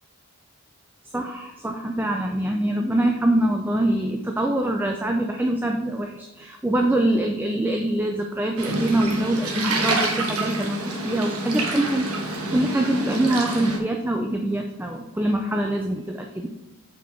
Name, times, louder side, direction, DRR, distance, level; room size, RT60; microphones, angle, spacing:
voice 1, 1.1-12.1 12.5-16.5, right 1 dB, 10° right, 2 dB, 0.3 m, -24 dB
sound 1, 8.6-13.8, right 2 dB, 85° right, 1.2 m, -27 dB
5.9 x 4.4 x 4.3 m, 1.0 s
head